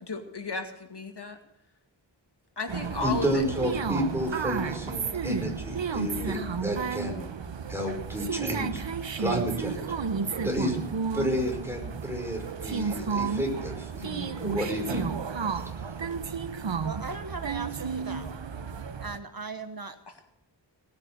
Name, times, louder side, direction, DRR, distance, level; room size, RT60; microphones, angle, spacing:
voice 1, 0.0-1.4 2.6-3.4 20.1-20.2, left 3 dB, 60° left, 4 dB, 2.3 m, -34 dB
sound 1, 2.7-19.2, right 5 dB, 75° right, 1.0 m, -32 dB
voice 2, 3.0-7.3 7.7-10.0 10.4-10.8 11.1-15.1 15.5-15.9, equal, 5° right, 1 dB, 5.3 m, -31 dB
voice 3, 16.8-18.3 19.0-20.0, right 4 dB, 50° right, 9 dB, 1.2 m, -38 dB
18.5 x 9.6 x 6.6 m, 0.82 s
wide cardioid pair, 65°, 45 cm